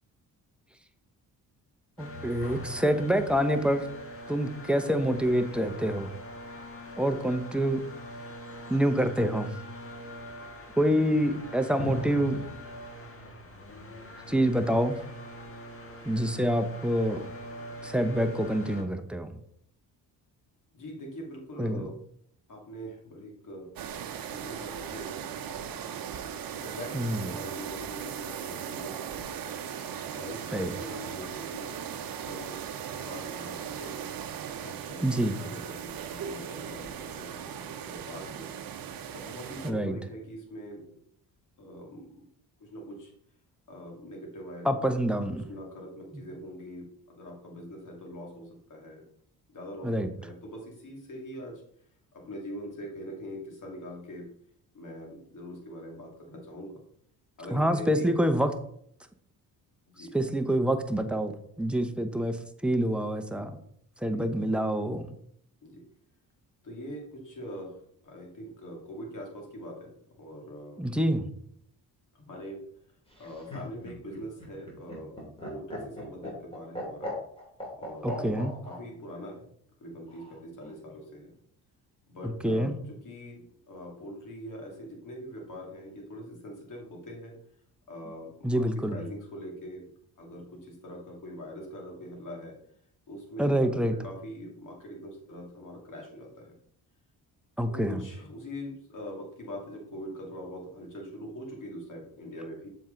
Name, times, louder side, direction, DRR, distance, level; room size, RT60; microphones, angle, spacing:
sound 1, 2.0-18.8, equal, 35° left, 1.5 m, -42 dB
voice 1, 2.0-3.9 4.3-6.1 7.0-7.8 8.7-9.5 10.8-12.4 14.3-15.0 16.0-17.3 17.8-19.3 21.6-21.9 26.9-27.4 30.5-30.7 35.0-35.4 39.6-40.0 44.6-45.5 46.1-46.2 49.8-50.1 57.5-58.5 60.0-62.4 62.6-63.5 64.0-65.0 70.8-71.3 78.0-78.5 82.2-82.8 88.4-89.0 93.4-93.9 97.6-98.0, equal, 5° right, 6 dB, 0.8 m, -26 dB
voice 2, 20.7-22.0 22.5-23.7 24.2-25.9 26.6-29.3 30.1-30.4 30.8-31.8 32.1-32.6 32.9-34.1 34.6-38.5 39.1-41.0 41.6-42.3 42.6-43.1 43.7-44.7 45.5-49.0 49.5-49.9 50.2-51.6 52.1-54.3 54.7-56.8 57.4-58.1 59.9-60.2 64.1-64.2 65.6-65.8 66.6-69.9 70.2-70.8 72.1-72.6 73.2-77.1 77.8-79.5 79.8-81.3 82.1-87.4 87.9-89.9 90.2-92.6 93.1-96.5 97.7-102.7, equal, 50° left, 0 dB, 2.4 m, -43 dB
sound 2, 23.8-39.7, right 8 dB, 60° right, 0.8 m, -38 dB
Laughter, 73.1-78.8 80.1-80.7, equal, 15° left, 2.9 m, -39 dB
7.3 x 4.6 x 3.8 m, 0.68 s
cardioid pair, 75°, 39 cm